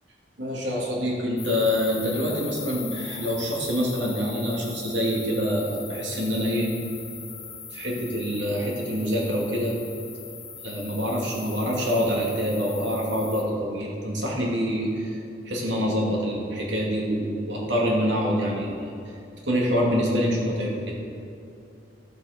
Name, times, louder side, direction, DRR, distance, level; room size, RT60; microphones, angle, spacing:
voice 1, 0.4-6.7 7.7-9.7 10.6-21.0, equal, 75° right, -2 dB, 2.4 m, -26 dB
sound 1, 1.4-13.4, left 7 dB, 35° left, 1.3 m, -40 dB
13.5 x 7.4 x 5.1 m, 2.6 s
head